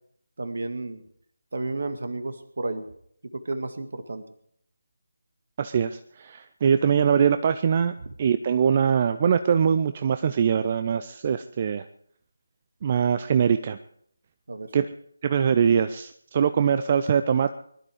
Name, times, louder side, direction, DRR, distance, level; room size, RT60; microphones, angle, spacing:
voice 1, 0.4-1.0 1.5-2.9 3.3-4.2 14.5-14.7, right 2 dB, 55° right, 9 dB, 1.9 m, -32 dB
voice 2, 5.6-11.9 12.8-13.8 14.7-14.9 15.2-17.5, right 7 dB, 30° right, 10 dB, 0.5 m, -22 dB
21.0 x 12.0 x 4.9 m, 0.67 s
figure-of-eight pair, 155°, 0 cm